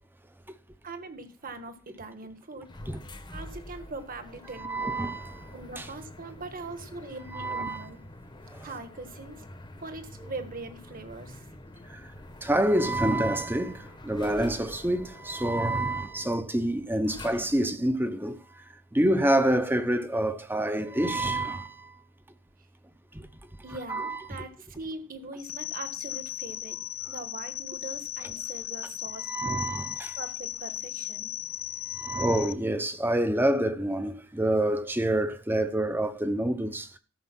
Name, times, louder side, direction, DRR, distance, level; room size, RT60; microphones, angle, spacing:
voice 1, 0.8-2.7 3.3-4.8 5.5-8.0 8.6-9.4 9.8-11.5 23.6-26.8 27.1-29.3 30.2-31.3, right 3 dB, 40° right, 1.4 m, -41 dB
sound 1, 2.6-17.8, left 1 dB, 20° left, 1.0 m, -47 dB
voice 2, 4.6-5.5 5.8-5.9 7.3-7.8 8.6-8.7 11.9-12.0 12.4-18.4 18.9-22.0 23.9-24.2 29.3-30.2 31.9-36.9, right 1 dB, 10° right, 0.7 m, -27 dB
sound 2, 25.4-32.5, left 14 dB, 70° left, 0.8 m, -37 dB
13.5 x 6.5 x 6.0 m
head